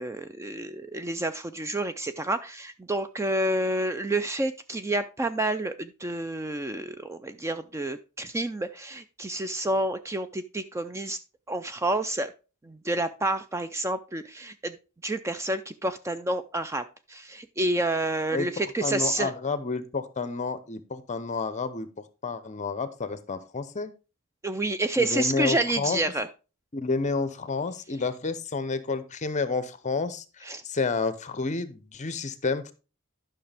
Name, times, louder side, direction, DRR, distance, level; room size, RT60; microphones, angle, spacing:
voice 1, 0.0-11.2 11.5-12.3 12.6-14.8 15.0-19.3 24.4-26.3 30.4-30.6, right 1 dB, 15° right, 10 dB, 0.3 m, -29 dB
voice 2, 18.8-23.9 25.0-26.0 26.7-32.7, left 4 dB, 35° left, 13 dB, 0.7 m, -30 dB
11.5 x 5.9 x 3.4 m, 0.33 s
head